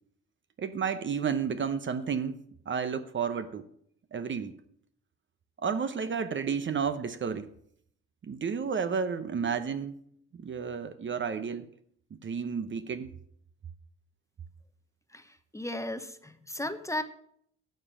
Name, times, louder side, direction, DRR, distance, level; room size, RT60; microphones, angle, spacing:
voice 1, 0.6-3.7 4.1-4.5 5.6-7.5 8.2-10.0 10.3-11.7 12.2-13.1, right 6 dB, 40° right, 10 dB, 0.8 m, -31 dB
voice 2, 15.1-17.0, left 1 dB, 10° left, 10 dB, 0.9 m, -35 dB
11.5 x 7.0 x 7.4 m, 0.68 s
cardioid pair, 90°, 30 cm